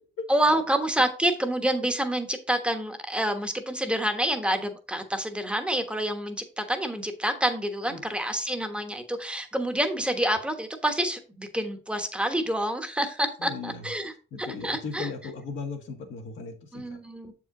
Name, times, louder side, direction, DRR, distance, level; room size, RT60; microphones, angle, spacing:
voice 1, 0.3-14.1 14.4-15.1 16.7-17.3, right 1 dB, 5° right, 6 dB, 1.2 m, -28 dB
voice 2, 13.4-13.9 14.3-17.0, left 4 dB, 75° left, 1 dB, 1.8 m, -37 dB
7.1 x 4.7 x 3.8 m, 0.37 s
cardioid pair, 90°, 20 cm